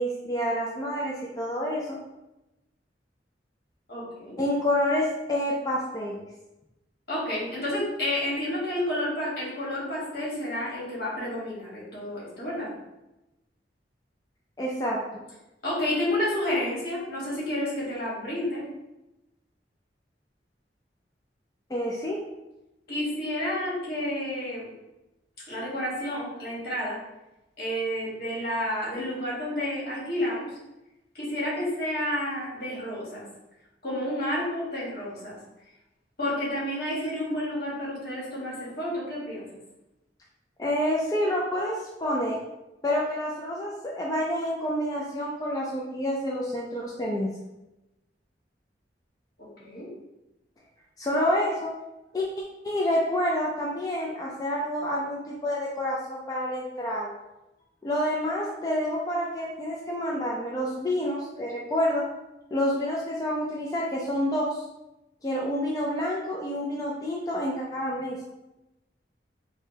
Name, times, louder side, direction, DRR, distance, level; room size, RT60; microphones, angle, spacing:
voice 1, 0.0-2.0 4.4-6.3 14.6-15.2 21.7-22.2 40.6-42.4 42.8-47.3 51.0-51.7 52.1-52.3 52.6-57.1 57.8-62.0 62.5-64.6 65.2-68.2, equal, 20° left, -3 dB, 0.4 m, -28 dB
voice 2, 3.9-4.4 7.1-12.7 15.6-18.6 22.9-24.7 25.5-27.0 27.6-30.5 31.1-33.2 33.8-35.4 36.2-39.5 49.4-49.9, left 1 dB, 60° left, -6 dB, 1.4 m, -30 dB
4.9 x 2.2 x 2.8 m, 0.97 s
head